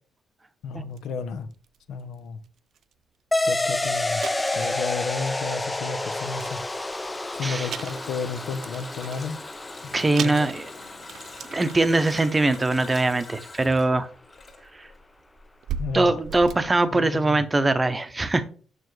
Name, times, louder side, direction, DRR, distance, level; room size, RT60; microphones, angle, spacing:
voice 1, 0.6-1.5 1.9-2.4 3.4-4.2 4.5-6.6 7.3-9.4 10.1-10.5 15.8-16.1 16.9-17.4, left 5 dB, 80° left, 0.7 m, -32 dB
sound 1, 1.0-1.1 1.5-1.8 2.4-2.5 2.8-2.9 3.3-3.4 3.6-3.7 4.2-5.9 6.3-7.2 7.6-9.4 9.8-9.9 10.2-12.2 12.5-12.8 13.9-14.0 14.5-17.5, right 7 dB, 65° right, 0.4 m, -38 dB
sound 2, 3.3-12.3, left 2 dB, 15° left, 0.4 m, -30 dB
Water tap faucet, 6.0-15.1 15.4-15.5, left 3 dB, 40° left, 2.0 m, -45 dB
voice 2, 9.9-10.7 11.5-14.1 14.8-14.9 15.9-18.4, right 2 dB, 20° right, 0.7 m, -22 dB
6.8 x 6.2 x 3.2 m
cardioid pair, 90°, 0 cm